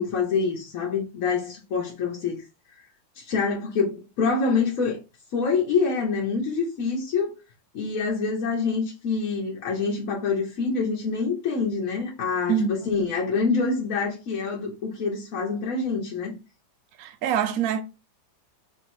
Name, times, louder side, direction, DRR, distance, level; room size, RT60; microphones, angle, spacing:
voice 1, 0.0-2.4 2.7-2.8 3.2-5.0 5.3-7.4 7.7-16.3, left 4 dB, 55° left, 1.1 m, -26 dB
voice 2, 12.5-13.0 17.0-17.8, right 8 dB, 70° right, 0.8 m, -25 dB
3.3 x 3.0 x 4.4 m
omnidirectional pair, 2.1 m